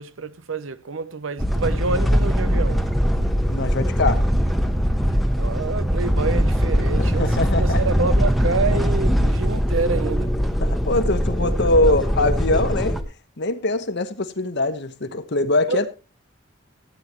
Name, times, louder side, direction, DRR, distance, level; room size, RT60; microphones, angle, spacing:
voice 1, 0.0-2.8 5.4-10.3 11.9-12.0 15.7-15.8, right 4 dB, 75° right, 0.7 m, -27 dB
sound 1, 1.4-13.0, equal, ahead, 1.0 m, -21 dB
voice 2, 3.5-4.3 7.0-7.8 10.6-13.0 13.4-15.9, left 2 dB, 60° left, 1.1 m, -22 dB
16.0 x 9.2 x 3.0 m
head